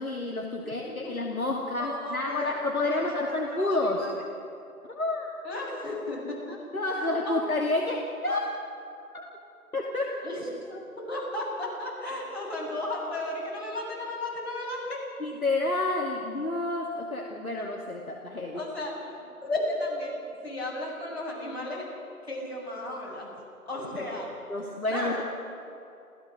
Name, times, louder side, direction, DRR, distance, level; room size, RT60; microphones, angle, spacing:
voice 1, 0.0-4.1 4.8-5.3 6.7-8.5 9.1-9.3 9.7-10.2 15.2-18.6 24.5-25.2, left 2 dB, 70° left, -1 dB, 2.6 m, -29 dB
voice 2, 0.6-1.1 1.8-4.2 5.4-6.6 7.2-7.4 10.2-15.0 18.5-21.9 22.2-23.3 23.7-24.3 24.9-25.2, left 1 dB, 45° left, -4 dB, 7.6 m, -34 dB
29.5 x 15.5 x 6.7 m, 2.6 s
figure-of-eight pair, 170°, 45 cm